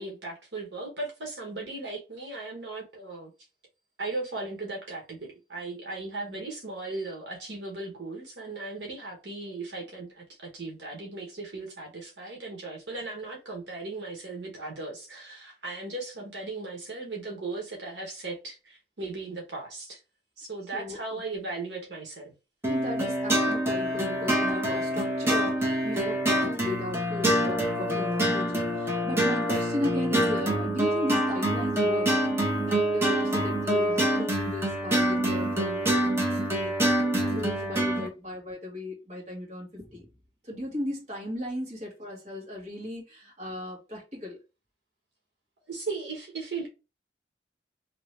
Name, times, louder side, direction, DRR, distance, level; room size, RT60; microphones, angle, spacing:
voice 1, 0.0-3.3 4.0-5.2 5.5-20.0 20.4-22.3 45.7-46.7, right 3 dB, 80° right, 1.1 m, -37 dB
voice 2, 20.7-21.2 22.7-32.2 32.6-36.8 37.2-40.1 40.4-44.4, left 1 dB, 40° right, 1.7 m, -36 dB
sound 1, 22.6-38.1, right 1 dB, 15° right, 0.9 m, -26 dB
2.9 x 2.7 x 3.2 m
head